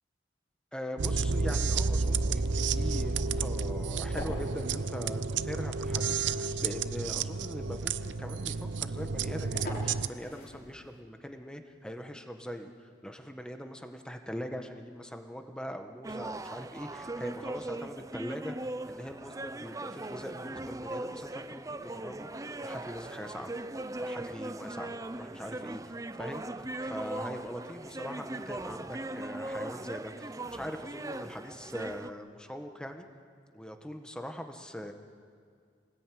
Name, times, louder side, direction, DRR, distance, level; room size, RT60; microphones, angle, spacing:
voice 1, 0.7-22.3 22.6-23.5 24.0-33.0 33.5-34.9, equal, 5° left, 5 dB, 1.6 m, -42 dB
sound 1, 1.0-10.1, right 4 dB, 85° right, 0.7 m, -31 dB
sound 2, 1.4-11.0, left 1 dB, 55° left, 4.6 m, -48 dB
sound 3, 16.0-32.1, right 2 dB, 20° right, 0.6 m, -39 dB
28.5 x 19.5 x 9.5 m, 2.2 s
head